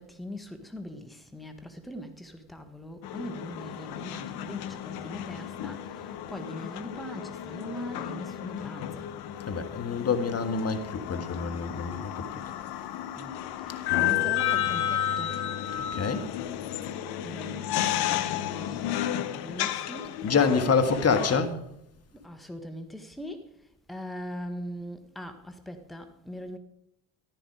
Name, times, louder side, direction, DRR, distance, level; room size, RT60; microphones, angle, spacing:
voice 1, 0.0-9.1 13.2-15.4 17.2-20.3 22.2-23.5 23.9-26.6, equal, ahead, 1.6 m, -41 dB
sound 1, 3.0-21.4, left 11 dB, 55° left, 1.1 m, -32 dB
voice 2, 9.5-12.3 15.9-16.3 20.2-21.6, left 5 dB, 30° left, 1.8 m, -26 dB
14.5 x 11.5 x 4.9 m
figure-of-eight pair, 50°, 46 cm